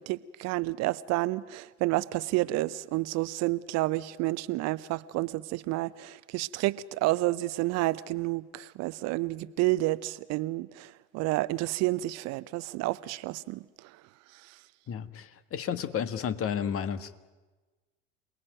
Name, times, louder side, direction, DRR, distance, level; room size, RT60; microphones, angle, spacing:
voice 1, 0.0-14.0 14.3-14.6, right 18 dB, 45° right, 17 dB, 0.8 m, -30 dB
voice 2, 14.9-17.2, left 8 dB, 35° left, 13 dB, 1.6 m, -32 dB
28.0 x 20.0 x 9.2 m, 1.2 s
figure-of-eight pair, 75°, 38 cm